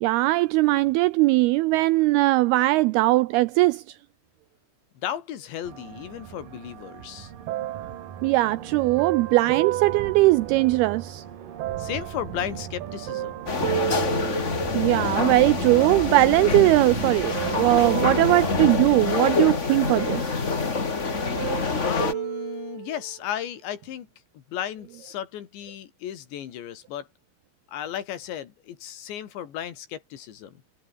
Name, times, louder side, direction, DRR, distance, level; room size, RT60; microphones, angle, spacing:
voice 1, 0.0-3.8 8.2-11.2 14.0-14.1 14.7-20.3, right 19 dB, 85° right, 2.2 m, -20 dB
voice 2, 5.0-7.3 11.8-13.5 21.8-24.1 24.3-27.1 27.7-30.6, left 10 dB, 85° left, 4.7 m, -34 dB
sound 1, 5.6-18.7, right 9 dB, 55° right, 3.7 m, -39 dB
sound 2, 7.5-11.1 11.6-15.1 15.8-16.5 17.1-19.4 19.8-20.9 21.1-23.2 23.8-23.9, right 14 dB, 70° right, 3.0 m, -34 dB
sound 3, 13.5-22.1, left 4 dB, 45° left, 0.9 m, -26 dB
omnidirectional pair, 5.0 m